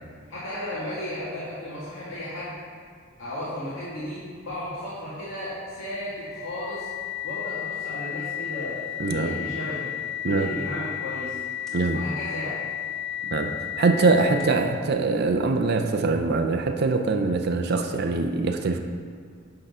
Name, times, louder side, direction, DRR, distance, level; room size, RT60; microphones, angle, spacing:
voice 1, 0.3-2.6 3.2-6.9 7.2-9.9 10.2-11.4 11.9-12.5, left 1 dB, 75° left, -11 dB, 1.9 m, -34 dB
sound 1, 6.2-14.7, left 11 dB, ahead, 1.2 m, -33 dB
voice 2, 9.0-9.3 10.2-10.5 11.7-12.0 13.2-18.8, right 3 dB, 55° right, 5 dB, 0.5 m, -23 dB
9.9 x 3.8 x 5.5 m, 2.1 s
head